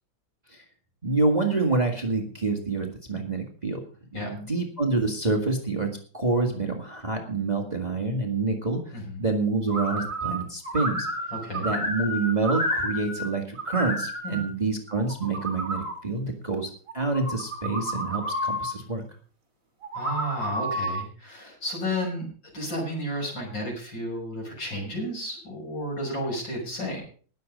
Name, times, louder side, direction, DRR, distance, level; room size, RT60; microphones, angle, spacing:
voice 1, 1.0-3.8 4.1-11.1 11.5-19.0, right 3 dB, 20° right, 2 dB, 1.9 m, -27 dB
voice 2, 8.9-9.3 11.3-11.7 14.2-14.4 19.9-22.3 22.5-27.0, equal, 65° left, 0 dB, 6.6 m, -32 dB
sound 1, 9.7-10.4 10.6-13.3 13.5-14.4 15.0-15.9 16.9-18.7 19.8-21.0, equal, 40° right, 3.9 m, -30 dB
19.5 x 7.6 x 5.2 m, 0.42 s
omnidirectional pair, 2.2 m